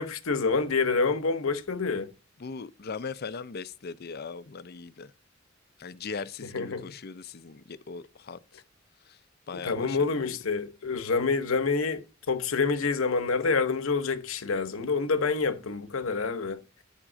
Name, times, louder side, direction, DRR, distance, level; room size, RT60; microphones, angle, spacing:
voice 1, 0.0-2.1 6.5-6.8 9.6-16.6, left 4 dB, 80° left, 0.9 m, -27 dB
voice 2, 2.4-5.1 5.8-8.6 9.0-9.2 9.5-10.4, left 5 dB, 50° left, 0.5 m, -39 dB
9.9 x 3.7 x 6.1 m
head